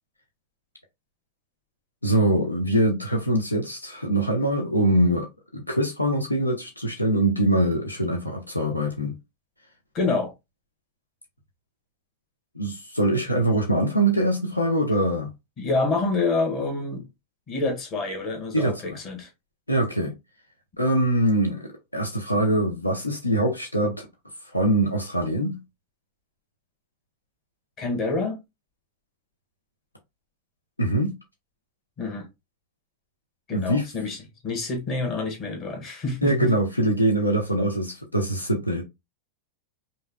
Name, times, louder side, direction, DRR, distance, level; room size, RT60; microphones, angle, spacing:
voice 1, 2.0-5.3 5.5-9.1 12.5-15.3 18.5-19.0 19.7-20.1 20.8-24.1 24.5-25.6 30.8-31.2 33.5-33.8 36.2-38.8, right 1 dB, 85° left, 1.0 m, -23 dB
voice 2, 9.9-10.3 15.6-17.1 17.5-19.3 27.8-28.4 32.0-32.3 33.5-34.2 34.4-36.5, left 3 dB, 30° left, 2.0 m, -27 dB
5.5 x 3.2 x 2.3 m
figure-of-eight pair, 90°, 0 cm